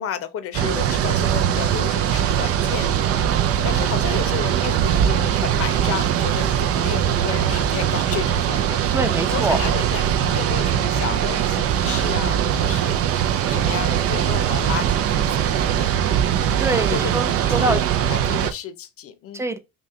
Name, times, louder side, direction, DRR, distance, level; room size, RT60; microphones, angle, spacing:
voice 1, 0.0-3.0 3.6-8.8 9.3-13.0 13.5-16.0 16.7-17.0 17.5-17.8 18.1-19.4, left 9 dB, 50° left, 0.7 m, -32 dB
sound 1, 0.5-18.5, right 9 dB, 50° right, 0.6 m, -21 dB
voice 2, 8.9-9.6 16.6-17.8 19.3-19.6, right 2 dB, 10° right, 0.7 m, -24 dB
3.1 x 2.7 x 3.5 m
hypercardioid pair, 70°, 30 cm